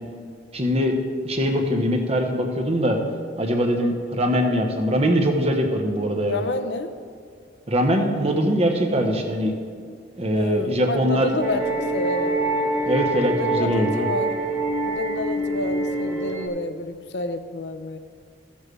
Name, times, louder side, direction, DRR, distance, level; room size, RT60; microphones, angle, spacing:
voice 1, 0.5-1.0 1.2-3.0 3.4-6.4 7.7-9.5 10.1-11.3 12.9-14.1, equal, 35° right, 3 dB, 1.1 m, -22 dB
voice 2, 6.3-6.9 10.3-11.7 11.9-12.4 13.2-14.3 14.8-18.0, left 2 dB, 65° left, 8 dB, 0.7 m, -29 dB
sound 1, 11.4-16.5, right 2 dB, 10° right, 1.2 m, -25 dB
14.5 x 7.3 x 3.3 m, 2.2 s
head